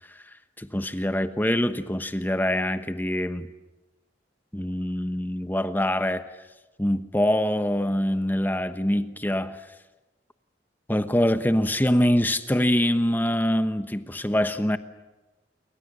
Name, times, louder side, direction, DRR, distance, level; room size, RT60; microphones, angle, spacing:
voice 1, 0.6-3.5 4.5-6.2 6.8-9.6 10.9-14.8, left 1 dB, 10° left, 1.1 m, -24 dB
28.5 x 23.5 x 8.1 m
head